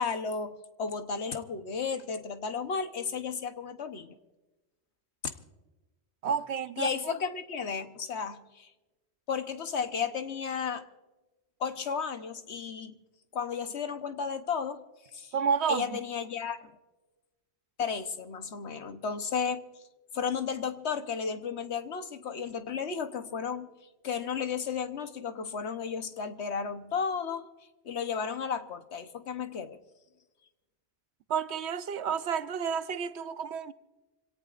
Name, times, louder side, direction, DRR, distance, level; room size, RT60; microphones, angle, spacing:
voice 1, 0.0-4.2 5.2-5.3 6.8-8.7 9.3-10.8 11.6-13.0 13.3-14.8 15.1-15.3 15.7-16.7 17.8-19.7 20.1-23.7 24.0-27.5 27.8-29.8, left 6 dB, 85° left, 1.3 m, -33 dB
voice 2, 6.2-6.9 15.3-15.9 31.3-33.7, right 7 dB, 80° right, 1.0 m, -30 dB
26.0 x 17.5 x 2.5 m
omnidirectional pair, 1.1 m